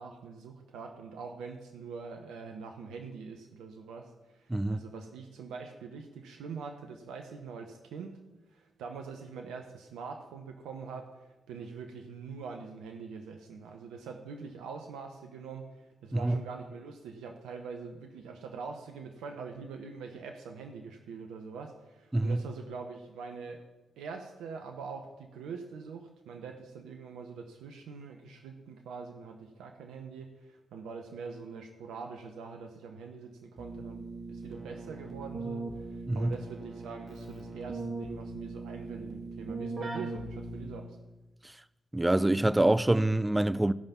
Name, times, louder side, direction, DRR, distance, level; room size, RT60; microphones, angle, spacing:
voice 1, 0.0-8.2 8.5-23.6 24.0-41.0, right 5 dB, 75° right, 0.9 m, -44 dB
voice 2, 4.5-4.8 16.1-16.4 22.1-22.4 36.1-36.3 41.9-43.7, right 1 dB, 15° right, 0.5 m, -25 dB
Keyboard (musical), 33.6-41.1, right 3 dB, 45° right, 2.0 m, -40 dB
16.0 x 5.4 x 5.8 m
hypercardioid pair, 40°, 0 cm